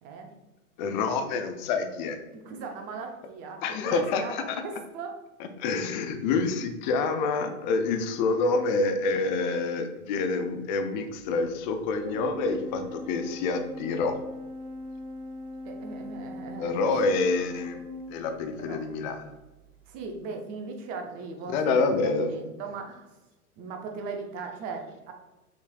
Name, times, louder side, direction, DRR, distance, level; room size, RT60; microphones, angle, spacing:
voice 1, 0.8-2.2 3.6-4.6 5.4-14.2 16.6-17.8 18.1-19.3 21.5-22.3, left 4 dB, 35° left, 7 dB, 0.5 m, -27 dB
voice 2, 2.3-5.2 15.6-17.2 18.7-18.8 19.9-21.9 22.3-23.1 23.6-25.1, right 4 dB, 20° right, 4 dB, 0.4 m, -38 dB
Organ, 12.0-18.6, left 1 dB, 45° right, 1.4 m, -40 dB
5.9 x 3.1 x 2.2 m, 1.1 s
figure-of-eight pair, 105°, 44 cm